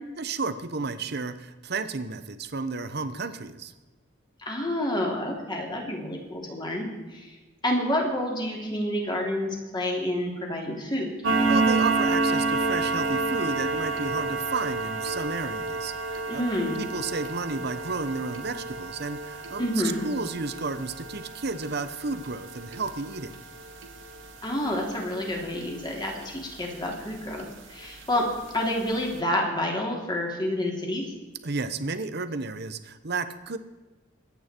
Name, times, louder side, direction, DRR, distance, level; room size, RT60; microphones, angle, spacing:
voice 1, 0.2-3.7 11.5-16.4 16.8-19.7 20.0-23.4 31.4-33.6, right 3 dB, 55° right, 12 dB, 1.0 m, -32 dB
voice 2, 4.4-7.4 7.6-11.2 16.3-16.7 19.6-20.0 24.4-28.2 28.5-31.0, left 1 dB, 20° left, 0 dB, 3.4 m, -29 dB
sound 1, 11.2-26.4 26.7-26.9 27.4-27.5 27.9-28.0 28.5-28.6 28.9-29.0, right 3 dB, 75° right, 2.0 m, -29 dB
23.0 x 9.2 x 4.6 m, 1.2 s
head